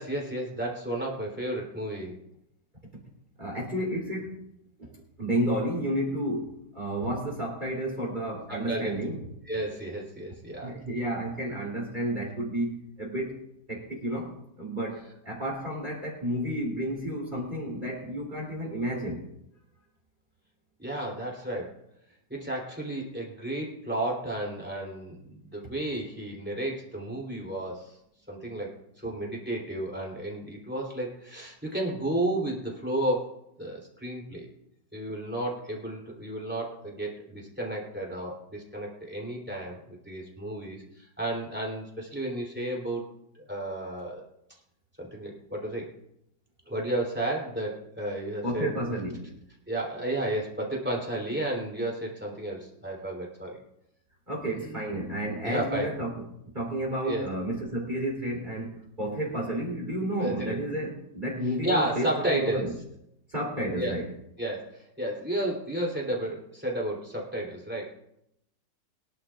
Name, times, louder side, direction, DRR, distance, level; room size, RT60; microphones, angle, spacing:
voice 1, 0.0-2.1 8.5-9.0 9.5-10.8 20.8-21.8 22.3-28.0 28.3-28.7 29.0-34.5 34.9-43.0 43.3-44.2 45.0-45.9 46.7-48.7 49.7-53.6 54.5-54.8 55.4-55.9 57.1-57.2 60.2-60.6 61.6-62.7 63.7-64.0 64.4-67.9, right 1 dB, 5° right, -2 dB, 3.2 m, -32 dB
voice 2, 3.4-4.4 4.8-4.9 5.2-9.2 10.6-13.4 13.7-19.2 48.4-49.3 54.3-56.1 56.4-62.7 63.3-64.1, right 1 dB, 25° right, -3 dB, 3.4 m, -31 dB
23.5 x 11.0 x 2.5 m, 0.80 s
omnidirectional pair, 1.9 m